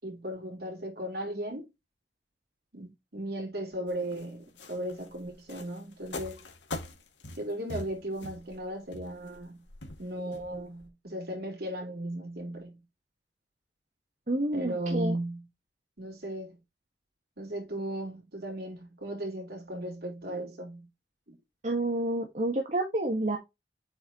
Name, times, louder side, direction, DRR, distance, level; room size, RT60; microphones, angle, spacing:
voice 1, 0.0-1.7 2.7-6.4 7.4-9.6 10.0-12.8 14.5-15.4 16.0-16.6 17.4-20.9 21.3-21.4, right 1 dB, 60° right, 4.2 m, -36 dB
sound 1, 3.9-10.9, left 2 dB, 90° left, 2.2 m, -43 dB
voice 2, 14.3-15.2 21.6-23.4, right 1 dB, 45° right, 1.7 m, -29 dB
8.5 x 4.5 x 3.0 m
head